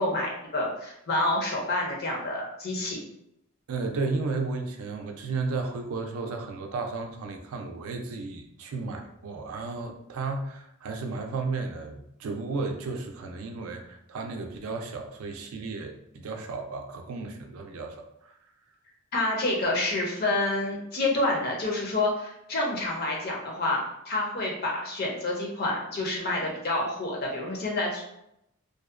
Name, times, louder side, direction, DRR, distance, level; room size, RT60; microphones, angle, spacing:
voice 1, 0.0-3.0 19.1-28.0, left 2 dB, 45° left, -1 dB, 0.5 m, -28 dB
voice 2, 3.7-18.4, right 3 dB, 80° right, 4 dB, 0.4 m, -33 dB
2.6 x 2.1 x 2.4 m, 0.80 s
head